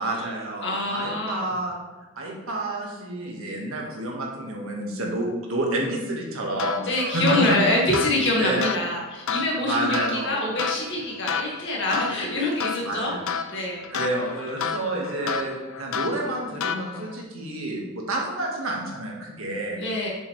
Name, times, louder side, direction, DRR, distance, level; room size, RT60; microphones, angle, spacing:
voice 1, 0.0-1.7 2.2-7.6 8.3-8.7 9.6-10.4 12.0-12.1 12.8-13.2 13.9-19.8, right 2 dB, 85° right, -1 dB, 1.7 m, -29 dB
voice 2, 0.6-1.5 6.8-13.1 13.5-13.8 19.8-20.1, left 2 dB, 60° left, -2 dB, 1.9 m, -25 dB
sound 1, 6.6-17.2, left 6 dB, 75° left, 0.5 m, -32 dB
7.1 x 6.6 x 3.3 m, 1.2 s
head